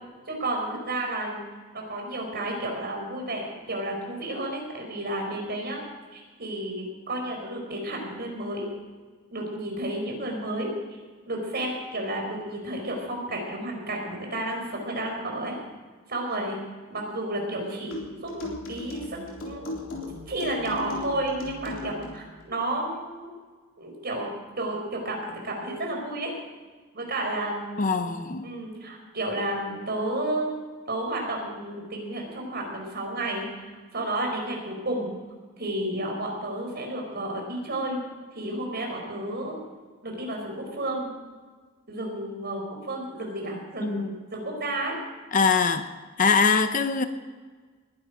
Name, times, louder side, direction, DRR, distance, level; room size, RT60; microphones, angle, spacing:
voice 1, 0.3-1.4 1.7-5.8 6.1-8.7 9.3-10.7 11.2-15.5 16.1-16.6 16.9-19.0 19.4-19.8 20.3-23.3 23.8-24.3 24.6-26.3 26.9-28.1 28.4-30.5 30.9-33.6 33.9-35.1 35.6-38.0 38.3-39.5 40.0-41.1 41.9-44.9, right 1 dB, 50° right, 4.7 m, -31 dB
sound 1, 17.9-22.2, left 3 dB, 65° left, 3.7 m, -38 dB
voice 2, 27.8-28.5 43.8-44.1 45.3-45.9 46.2-47.0, left 5 dB, 40° left, 0.8 m, -22 dB
20.5 x 11.0 x 5.1 m
head